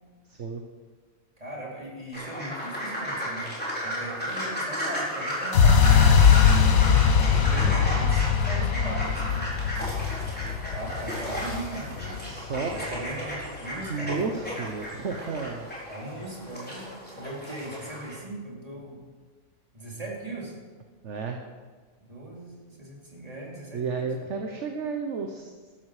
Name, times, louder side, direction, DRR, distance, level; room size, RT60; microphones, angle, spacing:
voice 1, 0.3-0.6 12.2-12.7 13.9-15.7 21.0-21.4 23.7-25.7, right 4 dB, 55° right, 4 dB, 1.3 m, -32 dB
voice 2, 1.4-3.5 3.8-6.7 7.2-9.5 10.7-12.4 12.7-14.5 15.9-16.9 17.1-19.0 19.7-20.5 22.0-24.1, right 2 dB, 25° right, -3 dB, 3.3 m, -38 dB
sound 1, 2.1-18.2, equal, 5° left, 4.4 m, -34 dB
sound 2, 5.5-13.5, left 7 dB, 75° left, 1.3 m, -21 dB
14.0 x 13.0 x 4.9 m, 1.4 s
omnidirectional pair, 1.5 m